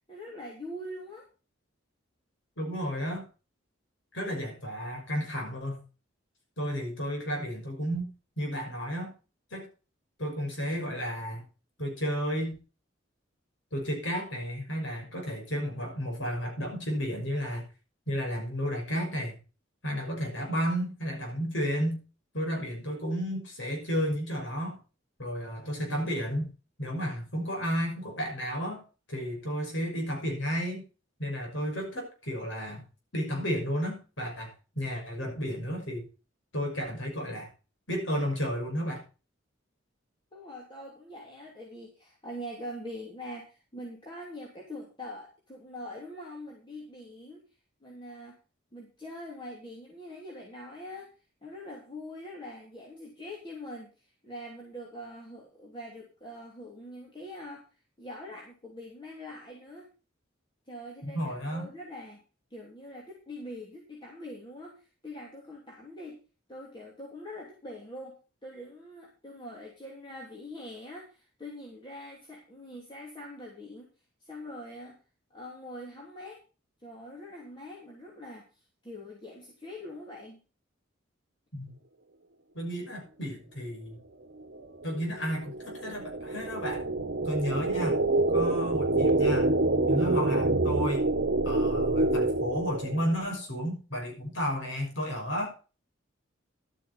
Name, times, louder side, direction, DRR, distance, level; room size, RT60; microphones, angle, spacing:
voice 1, 0.1-1.2 40.3-47.5 47.8-48.4 48.7-51.1 51.4-57.6 58.0-59.9 60.7-62.2 62.5-66.2 66.5-73.9 74.2-75.0 75.3-76.4 76.8-80.4, left 1 dB, 25° left, -2 dB, 2.8 m, -43 dB
voice 2, 2.6-3.2 4.1-5.8 6.6-8.1 8.4-9.1 9.5-9.7 10.2-11.4 11.8-12.6 13.7-17.6 18.1-19.4 19.8-22.0 22.3-24.8 25.2-26.5 26.8-28.8 29.1-30.8 31.2-32.8 33.1-36.1 36.5-37.5 37.9-39.0 61.0-61.7 81.5-81.7 82.5-84.0 84.8-86.8 87.2-88.0 88.3-89.5 89.9-91.1 91.4-95.5, equal, 70° left, 2 dB, 6.1 m, -32 dB
sound 1, 84.4-93.3, right 2 dB, 60° right, 1.2 m, -27 dB
12.0 x 9.3 x 4.2 m, 0.33 s
head